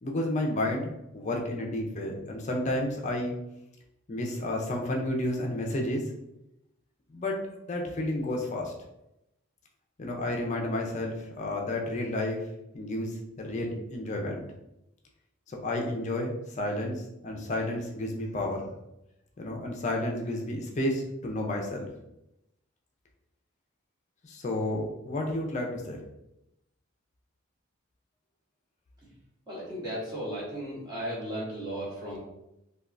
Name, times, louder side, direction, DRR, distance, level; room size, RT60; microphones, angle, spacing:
voice 1, 0.0-3.3 4.1-6.0 7.1-7.4 7.7-8.7 10.0-12.4 12.7-14.4 15.5-18.7 19.4-21.9 24.2-26.0, left 1 dB, 35° left, 1 dB, 0.5 m, -31 dB
voice 2, 29.5-32.2, equal, 20° right, -7 dB, 1.0 m, -35 dB
3.4 x 2.3 x 2.4 m, 0.87 s
head